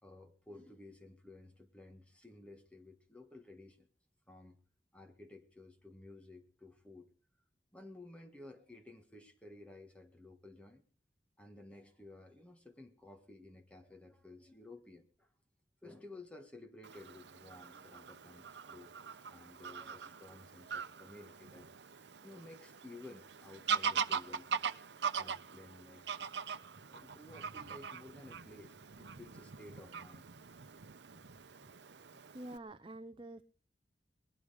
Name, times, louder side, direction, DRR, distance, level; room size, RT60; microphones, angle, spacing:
voice 1, 0.0-3.9 4.3-4.6 4.9-7.1 7.7-10.8 11.4-15.3 15.8-21.7 22.2-24.6 25.2-26.2 26.8-30.3 31.1-31.2 31.6-31.7 32.1-32.2, left 2 dB, 5° left, 4 dB, 1.6 m, -54 dB
Fowl / Bird vocalization bird call bird song, 16.8-32.6, right 6 dB, 85° right, 0.8 m, -42 dB
voice 2, 32.3-33.4, right 1 dB, 30° right, 11 dB, 0.7 m, -47 dB
20.0 x 11.5 x 5.0 m, 0.40 s
head